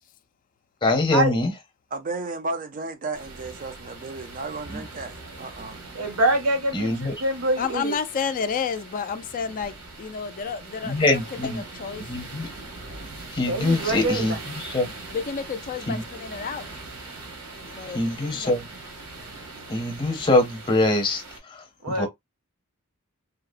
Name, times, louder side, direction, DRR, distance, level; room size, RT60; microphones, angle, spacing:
voice 1, 0.8-1.5 4.7-4.8 6.7-7.1 10.8-11.6 12.1-12.5 13.3-14.9 15.9-16.0 17.9-18.7 19.7-22.1, left 2 dB, 20° left, 0.7 m, -24 dB
voice 2, 1.9-5.8, right 3 dB, 40° right, 0.5 m, -33 dB
sound 1, 3.1-21.4, right 3 dB, 85° right, 1.1 m, -41 dB
voice 3, 5.9-8.0 13.4-14.2 21.8-22.1, right 1 dB, 70° right, 0.8 m, -25 dB
voice 4, 7.6-12.1 15.1-16.7 17.6-18.5, left 6 dB, 40° left, 0.3 m, -31 dB
2.8 x 2.0 x 2.4 m
head